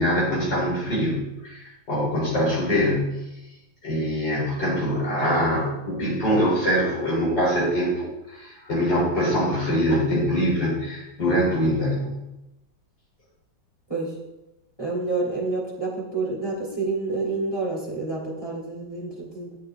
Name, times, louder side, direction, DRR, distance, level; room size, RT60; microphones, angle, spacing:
voice 1, 0.0-3.2 3.8-12.2, equal, 60° left, -6 dB, 4.6 m, -23 dB
voice 2, 14.8-19.6, right 3 dB, 10° left, -5 dB, 3.1 m, -28 dB
11.0 x 6.9 x 3.8 m, 0.96 s
omnidirectional pair, 2.1 m